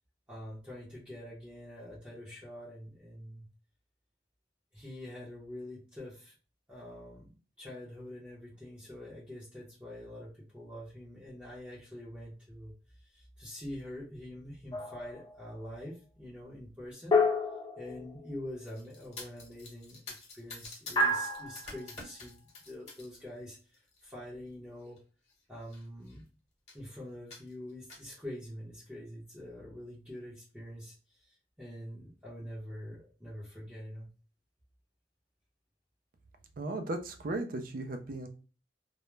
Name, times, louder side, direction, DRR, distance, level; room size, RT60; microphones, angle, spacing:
voice 1, 0.3-3.5 4.7-6.3 6.7-7.3 7.6-12.7 13.0-17.2 17.8-20.0 20.3-23.6 24.0-25.0 25.5-26.3 26.7-34.1, left 1 dB, 10° right, -9 dB, 0.7 m, -45 dB
sound 1, 14.7-15.3 17.1-18.4 21.0-21.8, left 2 dB, 25° left, 0.3 m, -29 dB
sound 2, 18.6-23.2 23.6-24.0 24.9-25.0 25.3-25.4 25.6-26.2 26.7-26.9 27.3-28.1, left 3 dB, 40° left, 1.0 m, -48 dB
voice 2, 36.6-38.3, right 2 dB, 55° right, 7 dB, 0.4 m, -36 dB
2.3 x 2.0 x 3.1 m, 0.36 s
head